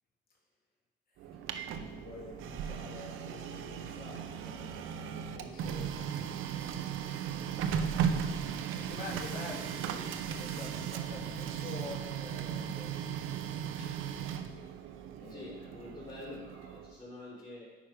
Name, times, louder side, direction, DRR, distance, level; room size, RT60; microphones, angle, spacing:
Printer, 1.2-17.0, right 8 dB, 90° right, 0.8 m, -37 dB
voice 1, 1.5-6.1 7.1-7.6 8.8-13.0 15.2-15.5, left 2 dB, 50° left, -3 dB, 3.1 m, -47 dB
voice 2, 15.3-17.7, left 2 dB, 25° left, -7 dB, 3.5 m, -47 dB
9.2 x 9.2 x 5.2 m, 1.3 s
cardioid pair, 90°, 20 cm